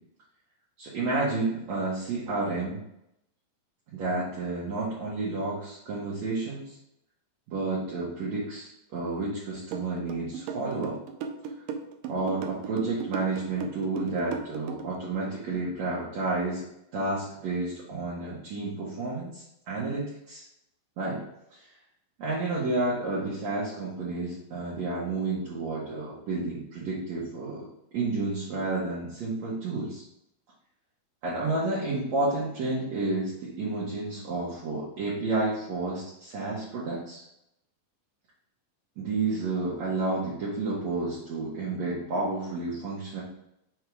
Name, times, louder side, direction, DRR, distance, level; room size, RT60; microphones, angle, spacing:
voice 1, 0.8-2.8 3.9-6.8 7.5-11.0 12.1-16.7 16.9-20.4 21.0-21.2 21.6-21.7 22.2-27.7 27.9-30.0 31.2-37.2 39.0-43.2, right 3 dB, 60° right, -7 dB, 2.2 m, -31 dB
sound 1, 9.7-15.0, right 7 dB, 80° right, 2.1 m, -36 dB
5.9 x 3.8 x 4.7 m, 0.80 s
omnidirectional pair, 4.2 m